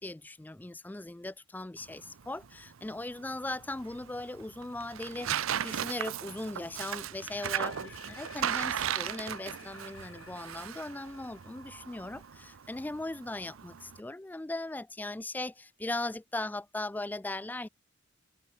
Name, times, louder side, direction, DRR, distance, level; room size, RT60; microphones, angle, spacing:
voice 1, 0.0-17.7, left 2 dB, 10° left, 0.3 m, -39 dB
Tearing, 1.8-14.0, right 9 dB, 75° right, 0.6 m, -37 dB
Brass instrument, 6.5-11.0, right 3 dB, 55° right, 3.9 m, -65 dB
sound 1, 7.0-13.0, left 7 dB, 75° left, 3.3 m, -54 dB
head